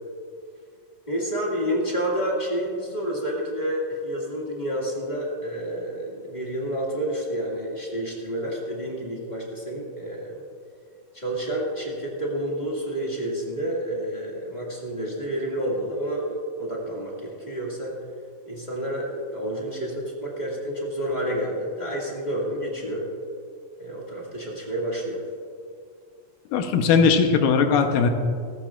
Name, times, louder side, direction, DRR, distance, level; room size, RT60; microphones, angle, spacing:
voice 1, 1.1-10.3 11.1-17.9 18.5-23.1 23.8-25.2, right 1 dB, 15° left, -3 dB, 1.5 m, -29 dB
voice 2, 26.5-28.1, left 5 dB, 80° left, 5 dB, 2.5 m, -19 dB
18.5 x 15.0 x 2.5 m, 2.2 s
omnidirectional pair, 4.0 m